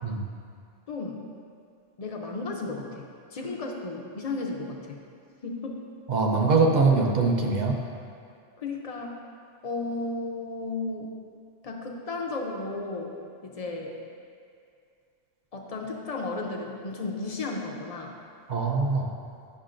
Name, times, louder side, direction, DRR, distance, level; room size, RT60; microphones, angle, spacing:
voice 1, 0.9-1.2 2.0-5.0 5.4-5.8 8.6-9.2 9.6-11.1 11.6-13.1 13.4-14.0 15.5-18.2, left 3 dB, 45° left, 0 dB, 0.5 m, -34 dB
voice 2, 6.1-7.8 18.5-19.1, right 4 dB, 50° right, 1 dB, 0.6 m, -22 dB
9.5 x 6.3 x 2.5 m, 2.3 s
omnidirectional pair, 1.3 m